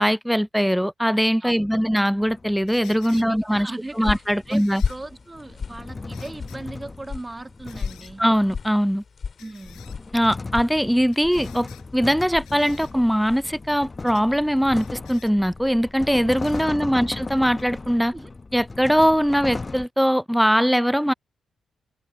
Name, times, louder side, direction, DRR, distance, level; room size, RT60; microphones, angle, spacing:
voice 1, 0.0-3.7 4.0-4.8 8.2-9.0 10.1-11.7 11.9-18.1 18.5-21.1, equal, ahead, 0.5 m, -21 dB
voice 2, 1.4-1.9 3.1-4.1 4.5-8.2 9.4-9.8 16.6-17.1 18.1-18.3, right 2 dB, 20° right, 1.6 m, -38 dB
sound 1, 2.0-3.3 4.3-8.9 9.4-19.9, left 3 dB, 35° left, 1.2 m, -37 dB
sound 2, 2.7-3.3 4.5-5.0 6.1-6.6 7.7-8.1 9.4-10.0 11.1-11.9 12.5-12.9 14.1-14.3 14.8-15.3 16.4-16.7 17.6-17.7, left 13 dB, 85° left, 4.2 m, -50 dB
sound 3, 3.5-13.6, left 5 dB, 55° left, 3.1 m, -35 dB
supercardioid pair, 45°, 0 cm